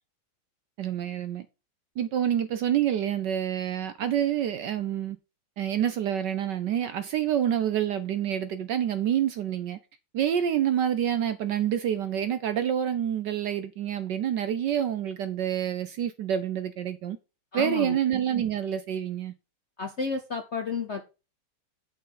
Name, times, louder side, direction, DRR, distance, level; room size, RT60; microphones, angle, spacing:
voice 1, 0.8-1.5 2.0-5.2 5.6-9.8 10.1-17.2 17.5-19.3, right 10 dB, 70° right, 1.1 m, -27 dB
voice 2, 17.5-18.0 19.8-21.1, left 5 dB, 50° left, 0.8 m, -31 dB
8.6 x 5.2 x 5.6 m
omnidirectional pair, 2.4 m